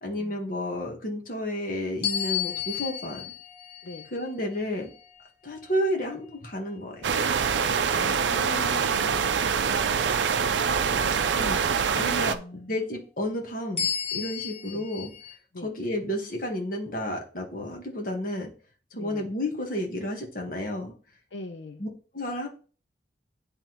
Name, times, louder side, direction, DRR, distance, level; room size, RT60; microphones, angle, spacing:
voice 1, 0.0-3.3 4.1-4.9 5.4-7.0 11.4-11.6 11.9-12.4 12.7-13.9 14.1-15.1 15.6-18.5 18.9-20.9 21.8-21.9 22.1-22.5, left 1 dB, 50° left, 1 dB, 1.3 m, -31 dB
sound 1, 2.0-6.8 7.3-7.6 13.8-15.4, left 9 dB, 35° left, 0.9 m, -34 dB
sound 2, 7.0-12.4, right 6 dB, 85° right, 0.4 m, -25 dB
voice 2, 7.9-9.6 10.7-11.7 12.3-12.7 14.7-14.9 15.5-15.7 18.9-19.3 21.3-21.8, left 3 dB, 90° left, 6 dB, 0.6 m, -42 dB
9.8 x 3.5 x 3.0 m, 0.39 s
head